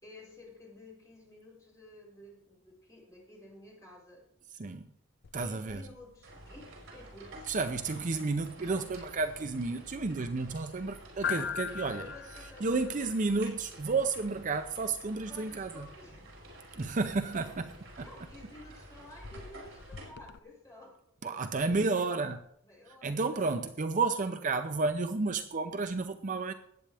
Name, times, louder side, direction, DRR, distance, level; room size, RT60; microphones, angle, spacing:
voice 1, 0.0-4.3 5.3-7.5 11.4-11.7 11.9-12.9 15.3-16.6 18.0-21.3 21.7-22.3 22.6-23.7, left 1 dB, 15° left, 5.1 m, -52 dB
sound 1, 5.2-20.4, left 7 dB, 55° left, 0.4 m, -45 dB
voice 2, 5.3-5.9 7.5-12.1 12.6-15.9 16.7-18.1 21.2-22.4 22.9-26.5, right 3 dB, 40° right, 0.6 m, -31 dB
sound 2, 6.2-20.1, right 1 dB, 75° right, 5.0 m, -50 dB
19.5 x 8.6 x 3.5 m
head